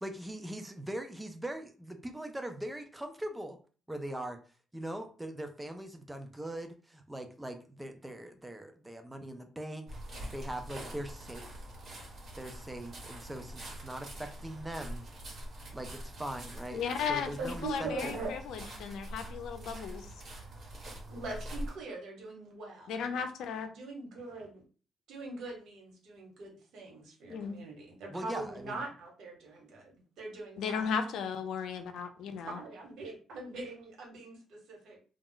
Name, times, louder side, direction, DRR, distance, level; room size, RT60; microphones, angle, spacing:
voice 1, 0.0-3.6 3.9-4.4 4.7-11.7 12.4-15.0 15.7-18.1 28.1-28.8, right 1 dB, 10° right, 6 dB, 0.5 m, -41 dB
sound 1, 9.9-21.8, right 1 dB, 45° right, 1.2 m, -44 dB
voice 2, 16.7-17.3 17.6-20.1 22.9-23.7 27.3-27.6 30.6-32.6, left 6 dB, 80° left, 7 dB, 0.4 m, -35 dB
voice 3, 17.4-18.3 21.1-22.9 23.7-24.6 25.1-30.9 32.4-35.0, right 3 dB, 75° right, 0 dB, 1.1 m, -42 dB
2.3 x 2.0 x 3.8 m, 0.39 s
cardioid pair, 90°, 0 cm